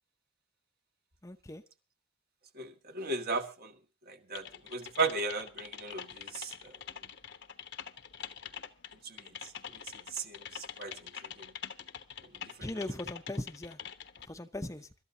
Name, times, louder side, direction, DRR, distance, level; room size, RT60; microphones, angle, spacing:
voice 1, 1.2-1.6 12.6-13.8 14.3-14.9, left 1 dB, 15° left, 0.8 m, -39 dB
voice 2, 2.5-3.7 4.1-6.5 9.0-9.3 10.1-11.5 12.6-12.7, right 4 dB, 55° right, 1.8 m, -36 dB
Typing, 4.3-14.3, left 8 dB, 65° left, 1.1 m, -45 dB
26.0 x 13.0 x 2.8 m
head